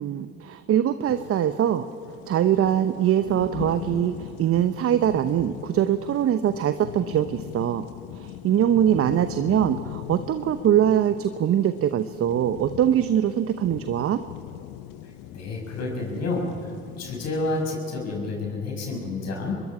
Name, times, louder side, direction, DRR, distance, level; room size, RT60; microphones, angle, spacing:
voice 1, 0.0-1.9 2.3-7.8 8.1-14.2, right 10 dB, 45° right, 11 dB, 0.9 m, -23 dB
sound 1, 1.0-17.7, left 14 dB, 70° left, 0.8 m, -40 dB
voice 2, 15.0-19.5, left 2 dB, 55° left, 0 dB, 6.6 m, -30 dB
25.0 x 21.5 x 4.9 m, 2.7 s
hypercardioid pair, 60°, 31 cm